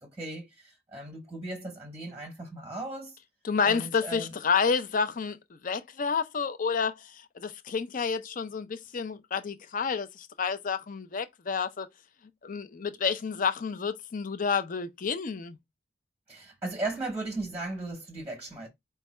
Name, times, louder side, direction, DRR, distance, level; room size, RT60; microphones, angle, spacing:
voice 1, 0.0-3.2 3.6-4.3 16.3-18.7, right 2 dB, 10° right, 0.8 m, -37 dB
voice 2, 3.4-5.4 5.6-11.9 12.4-15.5, left 5 dB, 45° left, 0.5 m, -29 dB
4.6 x 2.2 x 4.1 m
head